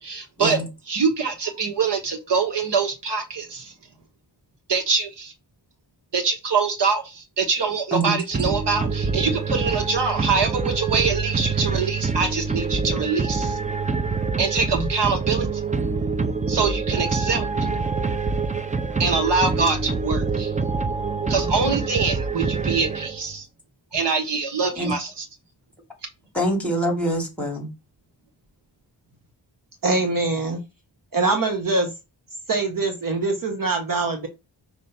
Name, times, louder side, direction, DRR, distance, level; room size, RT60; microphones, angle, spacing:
voice 1, 0.0-3.7 4.7-5.3 6.1-13.6 14.4-15.5 16.5-17.7 19.0-20.5 21.3-23.5 23.9-25.3, right 4 dB, 80° right, 1.5 m, -24 dB
sound 1, 8.3-23.4, right 4 dB, 20° right, 0.5 m, -25 dB
voice 2, 26.3-27.7, right 1 dB, 5° left, 3.0 m, -24 dB
voice 3, 29.8-30.6 31.1-31.9 32.5-34.3, right 3 dB, 50° right, 1.3 m, -23 dB
5.4 x 3.1 x 5.6 m
wide cardioid pair, 110°, 41 cm